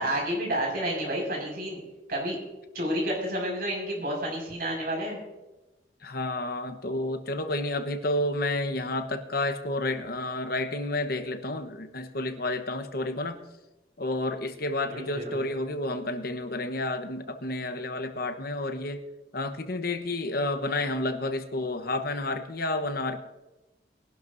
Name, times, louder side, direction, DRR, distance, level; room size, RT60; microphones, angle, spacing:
voice 1, 0.0-1.8 2.1-2.4 2.7-5.2 14.9-15.4, right 1 dB, 55° right, -1 dB, 5.4 m, -30 dB
voice 2, 6.0-13.4 14.0-19.0 19.3-23.2, left 2 dB, 55° left, 8 dB, 1.1 m, -30 dB
21.5 x 11.5 x 2.7 m, 1.1 s
head